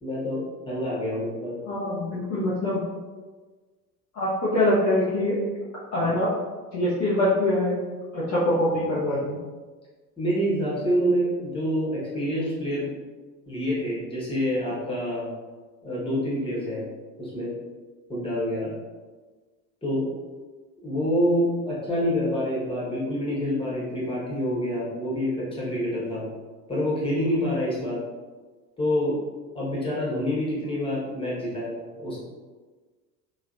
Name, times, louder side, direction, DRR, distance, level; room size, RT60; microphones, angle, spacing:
voice 1, 0.0-1.6 10.2-12.9 13.5-15.3 15.8-16.8 17.2-17.5 18.1-18.7 19.8-20.1 20.8-26.2 26.7-28.0 28.8-29.2 29.5-32.2, equal, 10° left, -7 dB, 1.3 m, -27 dB
voice 2, 1.7-2.8 4.1-5.4 5.9-6.3 6.7-7.9 8.1-9.4, left 1 dB, 35° left, -8 dB, 0.8 m, -24 dB
3.0 x 2.9 x 2.5 m, 1.4 s
figure-of-eight pair, 65°, 48 cm